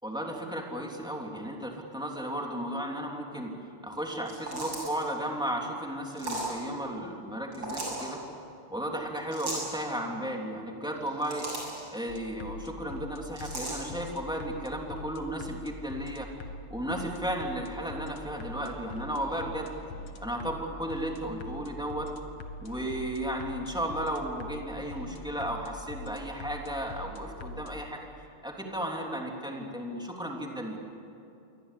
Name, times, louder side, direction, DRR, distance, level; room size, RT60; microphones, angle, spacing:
voice 1, 0.0-3.5 3.8-8.2 8.7-11.5 11.9-16.3 16.7-19.7 20.2-22.1 22.6-28.1 28.4-30.8, right 1 dB, ahead, 0 dB, 3.1 m, -34 dB
sound 1, 4.2-5.0 6.1-6.5 7.5-8.1 9.3-9.7 11.0-11.8 13.4-13.8, right 2 dB, 60° right, 8.2 m, -36 dB
sound 2, 12.1-27.7, left 2 dB, 75° left, 2.3 m, -43 dB
28.0 x 23.0 x 8.5 m, 2.7 s
omnidirectional pair, 2.3 m